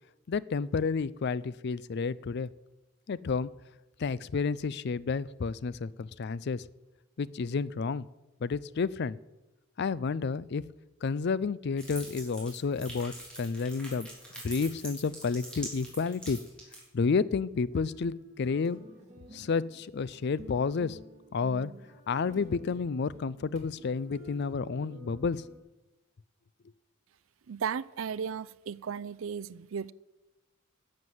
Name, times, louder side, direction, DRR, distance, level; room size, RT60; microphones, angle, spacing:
voice 1, 0.3-2.5 3.1-3.5 4.0-6.7 7.2-8.1 8.4-9.2 9.8-10.6 11.0-14.1 14.4-16.4 16.9-18.8 19.3-21.0 21.3-21.7 22.1-25.4, left 5 dB, 55° left, 19 dB, 0.4 m, -30 dB
sound 1, 11.8-16.8, right 1 dB, 5° left, 3.6 m, -43 dB
sound 2, 17.7-25.6, right 1 dB, 35° right, 2.3 m, -51 dB
voice 2, 27.5-29.9, right 7 dB, 70° right, 16 dB, 0.4 m, -35 dB
11.5 x 7.5 x 7.8 m, 1.0 s
head